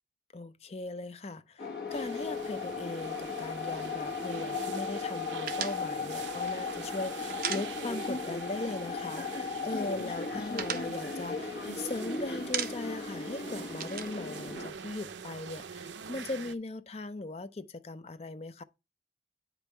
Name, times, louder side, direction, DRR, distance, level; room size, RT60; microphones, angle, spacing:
voice 1, 0.3-18.6, left 2 dB, 35° left, 0.5 m, -39 dB
sound 1, 1.6-14.7, left 4 dB, 55° left, 1.5 m, -36 dB
sound 2, 1.9-16.5, right 6 dB, 85° right, 0.6 m, -46 dB
sound 3, 5.5-8.3 8.5-8.7 9.0-9.7 10.0-12.0 12.3-13.1 13.3-15.2, right 8 dB, 50° right, 0.8 m, -38 dB
8.2 x 5.3 x 4.4 m
head